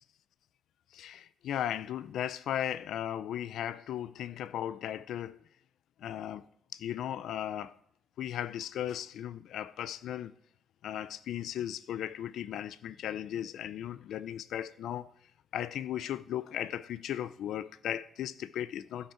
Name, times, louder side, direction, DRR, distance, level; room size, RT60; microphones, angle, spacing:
voice 1, 0.9-5.4 6.0-6.4 6.7-7.7 8.2-10.3 10.8-15.1 15.5-19.1, left 10 dB, 75° left, 0.4 m, -36 dB
15.5 x 5.5 x 4.4 m
cardioid pair, 90°, 0 cm